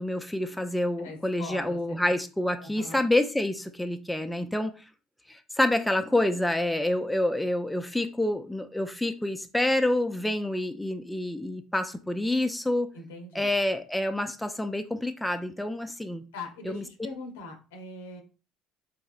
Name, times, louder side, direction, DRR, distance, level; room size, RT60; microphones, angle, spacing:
voice 1, 0.0-4.7 5.3-12.9 13.3-16.2 16.7-16.8, left 1 dB, 5° left, 0.4 m, -27 dB
voice 2, 1.0-2.0 2.6-3.0 12.9-13.6 16.3-18.2, left 3 dB, 85° left, 0.8 m, -42 dB
3.8 x 2.7 x 2.4 m
hypercardioid pair, 65°, 0 cm